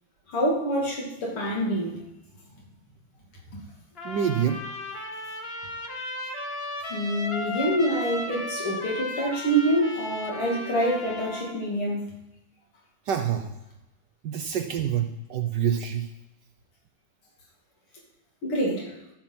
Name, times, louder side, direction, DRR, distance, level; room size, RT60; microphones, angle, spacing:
voice 1, 0.3-2.0 3.5-3.6 6.9-12.2 18.4-18.9, right 1 dB, 90° left, -2 dB, 3.3 m, -26 dB
Trumpet, 4.0-11.6, left 1 dB, 40° left, 1.0 m, -35 dB
voice 2, 4.0-4.6 13.1-13.5 14.2-16.1, right 8 dB, 65° right, 6 dB, 1.1 m, -26 dB
13.0 x 5.8 x 5.8 m, 0.91 s
omnidirectional pair, 2.3 m